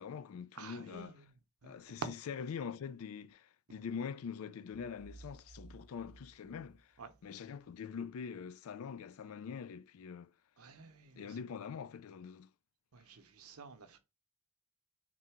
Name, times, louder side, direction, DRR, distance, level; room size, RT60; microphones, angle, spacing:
voice 1, 0.0-1.1 1.6-6.9 7.2-10.3 11.2-12.5, left 6 dB, 75° left, 0.4 m, -44 dB
voice 2, 0.6-1.3 1.6-1.8 7.0-7.1 10.6-11.4 12.9-14.0, right 4 dB, 85° right, 0.8 m, -53 dB
sound 1, 4.7-7.6, right 3 dB, 10° right, 0.5 m, -57 dB
3.7 x 2.8 x 4.5 m
head